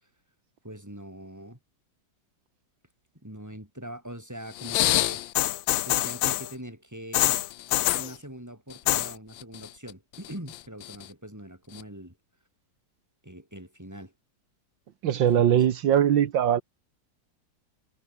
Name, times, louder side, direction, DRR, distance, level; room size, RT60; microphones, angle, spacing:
voice 1, 0.6-1.6 3.2-5.3 5.8-7.4 7.9-12.2 13.2-14.1 15.3-15.6, right 1 dB, 10° right, 6.2 m, -42 dB
sound 1, 4.6-6.5 7.1-8.1 8.7-9.1 9.4-9.9 10.2-11.0 11.8-11.9, left 15 dB, 90° left, 1.4 m, -25 dB
voice 2, 15.0-16.6, right 10 dB, 80° right, 1.9 m, -21 dB
omnidirectional pair, 2.0 m